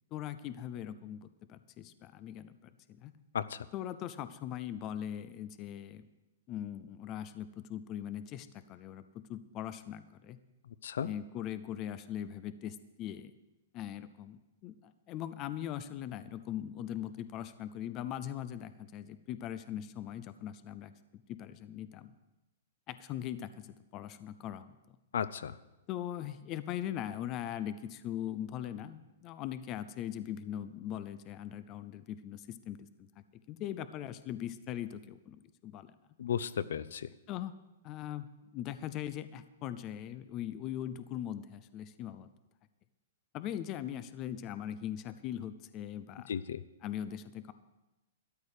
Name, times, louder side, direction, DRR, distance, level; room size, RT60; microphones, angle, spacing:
voice 1, 0.1-3.1 3.7-6.1 6.5-10.4 11.0-13.3 13.7-20.9 21.3-22.1 22.9-24.7 25.9-33.1 33.5-36.0 37.3-37.5 37.8-42.3 43.3-46.4 46.8-47.5, left 11 dB, 20° left, 13 dB, 0.4 m, -40 dB
voice 2, 25.1-25.5 36.2-37.0 46.3-46.6, left 8 dB, 75° left, 17 dB, 0.5 m, -34 dB
13.0 x 11.5 x 4.9 m, 0.99 s
hypercardioid pair, 175°, 0 cm